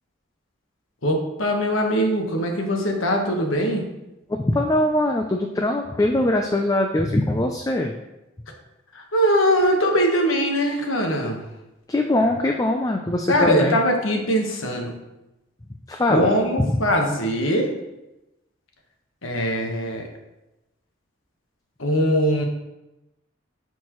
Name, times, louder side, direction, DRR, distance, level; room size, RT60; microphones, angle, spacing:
voice 1, 1.0-3.8 8.9-11.4 13.3-14.9 16.1-17.7 19.2-20.1 21.8-22.5, equal, 80° left, 2 dB, 1.3 m, -21 dB
voice 2, 4.3-7.9 11.9-13.8 15.9-16.3 16.6-16.7, left 1 dB, 15° left, 3 dB, 0.4 m, -22 dB
11.5 x 4.5 x 3.1 m, 0.96 s
head